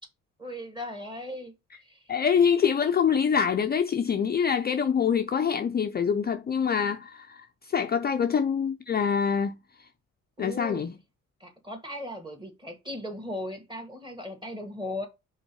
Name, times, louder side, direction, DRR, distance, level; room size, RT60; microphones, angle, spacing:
voice 1, 0.4-1.5 1.8-2.1 10.4-10.8 11.4-15.1, left 1 dB, 15° right, 2.0 m, -37 dB
voice 2, 2.1-7.4 7.7-9.5 10.4-10.9, left 7 dB, 35° left, 0.5 m, -25 dB
5.3 x 4.0 x 4.6 m
cardioid pair, 90°, 30 cm